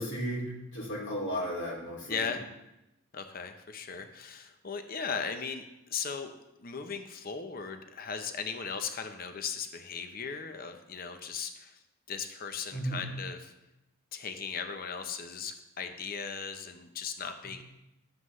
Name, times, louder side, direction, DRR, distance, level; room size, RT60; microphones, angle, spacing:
voice 1, 0.0-2.3 12.7-13.0, equal, 60° left, -4 dB, 2.5 m, -34 dB
voice 2, 2.1-2.4 3.1-6.3 6.6-11.8 12.1-13.5 14.1-17.6, left 6 dB, 45° left, 7 dB, 0.7 m, -37 dB
11.5 x 7.5 x 3.1 m, 0.91 s
head